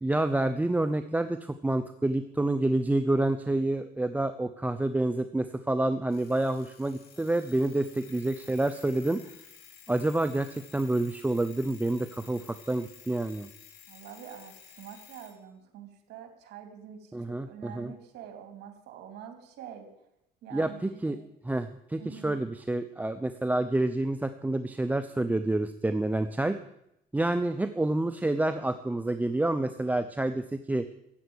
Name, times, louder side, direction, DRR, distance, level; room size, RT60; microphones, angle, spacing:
voice 1, 0.0-9.2 9.9-13.5 17.1-17.9 20.5-21.2 21.4-26.6 27.1-30.9, right 2 dB, 10° right, 10 dB, 0.7 m, -28 dB
Alarm, 6.1-15.4, left 8 dB, 70° left, 2.7 m, -53 dB
voice 2, 13.9-19.9 20.4-21.2 22.0-22.3, right 8 dB, 75° right, 6 dB, 3.0 m, -46 dB
14.5 x 8.0 x 9.6 m, 0.82 s
cardioid pair, 110°, 17 cm